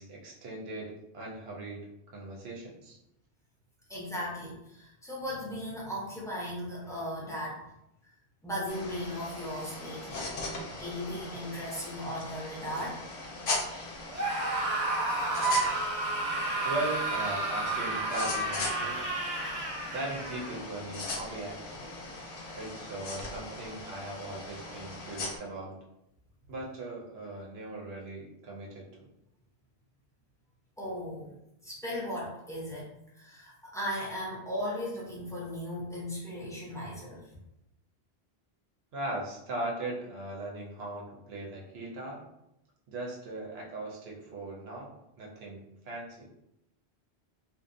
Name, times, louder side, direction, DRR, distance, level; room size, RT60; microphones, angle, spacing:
voice 1, 0.0-3.0 16.6-19.0 19.9-21.9 22.5-25.8 26.5-29.1 38.9-42.3 42.9-46.3, right 2 dB, 75° right, -2 dB, 0.9 m, -39 dB
voice 2, 3.9-7.7 8.4-10.3 10.8-13.0 30.8-31.3 31.6-37.2, equal, 5° left, -6 dB, 0.5 m, -37 dB
sound 1, 8.7-25.4, left 2 dB, 65° left, 0.7 m, -39 dB
Screaming, 14.1-20.6, right 2 dB, 50° right, 0.6 m, -31 dB
2.6 x 2.0 x 2.5 m, 0.84 s
omnidirectional pair, 1.1 m